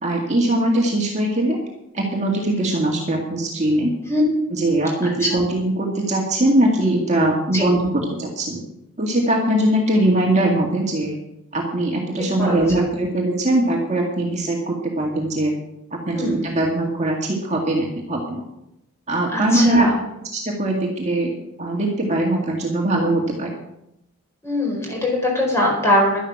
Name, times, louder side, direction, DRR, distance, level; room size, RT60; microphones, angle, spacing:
voice 1, 0.0-1.6 1.9-3.9 4.5-8.6 9.0-11.2 11.5-15.5 15.9-18.4 19.1-19.9 20.3-23.5, right 1 dB, 30° right, -1 dB, 2.1 m, -21 dB
voice 2, 16.1-16.4 19.3-19.9 24.4-26.2, left 1 dB, 10° left, -1 dB, 4.7 m, -21 dB
12.0 x 11.0 x 6.0 m, 0.82 s
head